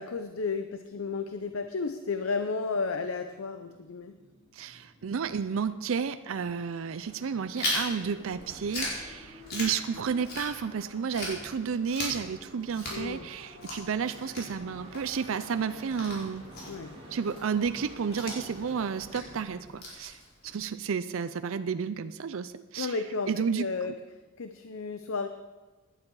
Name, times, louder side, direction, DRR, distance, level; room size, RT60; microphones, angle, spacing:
voice 1, 0.0-4.1 12.9-13.3 16.7-16.9 22.8-23.9 24.4-25.3, left 4 dB, 75° left, 8 dB, 0.7 m, -33 dB
sound 1, 1.9-19.6, equal, 30° right, 4.4 m, -51 dB
voice 2, 4.5-16.4 17.1-20.2 20.5-23.0 23.3-23.7, right 6 dB, 70° right, 11 dB, 0.5 m, -32 dB
Chewing mastication, 7.5-10.8 11.1-20.6, left 1 dB, 50° left, 4.9 m, -38 dB
17.0 x 11.0 x 4.7 m, 1.2 s
head